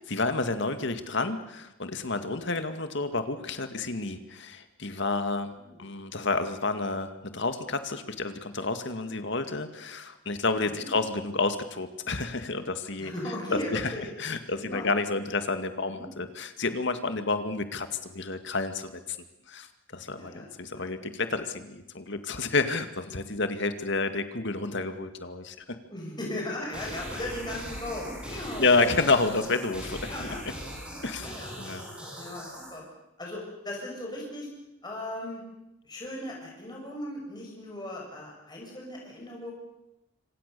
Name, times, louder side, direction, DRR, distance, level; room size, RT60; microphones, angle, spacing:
voice 1, 0.1-5.5 5.8-13.1 13.5-13.9 14.2-19.2 19.5-19.7 19.9-25.6 28.6-30.3 31.0-31.8, left 3 dB, 60° left, 8 dB, 2.2 m, -30 dB
voice 2, 13.0-14.1 14.6-14.9 15.9-16.1 20.1-20.5 20.7-20.8 25.9-29.0 30.0-30.4 31.1-31.5 32.2-32.8 33.2-34.5 34.8-35.4 35.8-39.5, left 1 dB, 20° left, -2 dB, 7.3 m, -37 dB
sound 1, 26.7-32.7, equal, 5° right, 7.8 m, -40 dB
27.0 x 26.0 x 7.0 m, 0.90 s
head